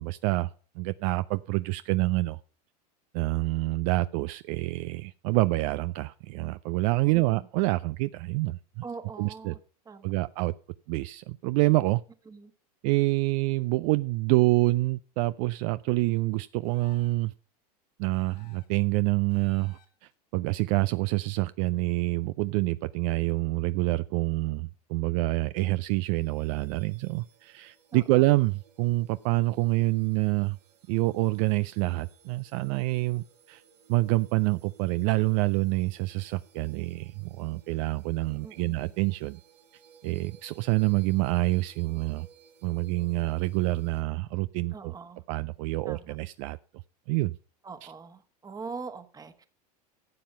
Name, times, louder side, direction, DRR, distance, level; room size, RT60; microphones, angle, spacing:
voice 1, 0.0-2.4 3.1-8.8 9.2-9.5 10.0-10.5 10.9-12.0 12.8-17.3 18.0-30.6 30.9-33.6 33.9-39.4 40.0-42.3 42.6-44.9 45.3-46.6 47.1-47.4 47.8-47.9, right 21 dB, 55° right, 15 dB, 0.4 m, -27 dB
voice 2, 7.1-7.5 8.8-9.6 9.9-10.1 12.3-12.5 27.9-28.3 38.4-38.9 44.7-45.2 45.9-46.2 47.6-49.5, right 4 dB, 20° right, 10 dB, 1.3 m, -42 dB
sound 1, 16.6-17.3 18.1-18.8 19.3-20.1, left 11 dB, 80° left, 1.9 m, -60 dB
sound 2, 26.1-44.0, right 6 dB, 85° right, 1.7 m, -60 dB
11.5 x 7.6 x 5.5 m, 0.41 s
hypercardioid pair, 110°, 20 cm